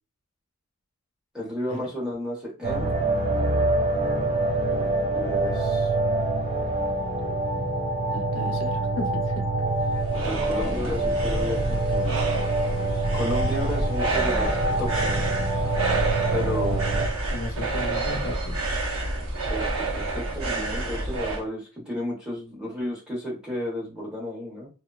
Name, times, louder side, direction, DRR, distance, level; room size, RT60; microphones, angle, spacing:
voice 1, 1.3-2.9 5.1-5.9 10.1-12.2 13.1-14.5 14.8-15.3 16.3-17.0 19.5-24.7, left 1 dB, 5° right, -5 dB, 0.9 m, -33 dB
sound 1, 2.6-17.1, right 2 dB, 25° right, 0.5 m, -26 dB
voice 2, 8.1-9.4 17.3-18.6, left 1 dB, 60° left, 1 dB, 0.7 m, -35 dB
sound 2, 9.6-21.4, right 2 dB, 80° right, 0.9 m, -28 dB
2.7 x 2.2 x 2.3 m, 0.34 s
head